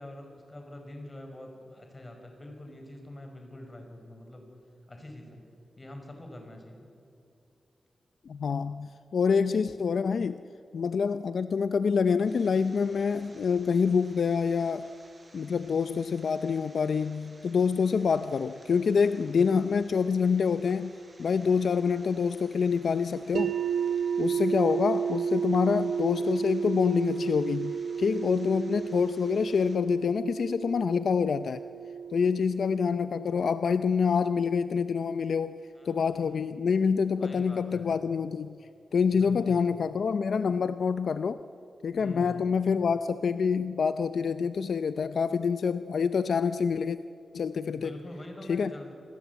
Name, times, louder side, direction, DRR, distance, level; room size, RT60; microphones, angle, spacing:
voice 1, 0.0-4.5 4.9-5.4 5.8-6.9 35.8-36.4 37.2-37.9 39.1-39.6 42.0-42.5 47.6-48.9, left 1 dB, 20° left, 3 dB, 5.3 m, -45 dB
voice 2, 8.3-10.4 10.7-14.9 15.3-20.9 21.2-23.5 24.2-31.6 32.1-35.6 35.8-38.6 38.9-41.4 41.8-47.0 47.3-47.9 48.5-48.7, left 6 dB, 70° left, 12 dB, 0.6 m, -26 dB
sound 1, 12.2-29.8, right 2 dB, 30° right, 4.9 m, -57 dB
sound 2, 23.3-35.3, right 7 dB, 80° right, 0.9 m, -33 dB
28.5 x 20.5 x 8.2 m, 2.5 s
wide cardioid pair, 130°, 0 cm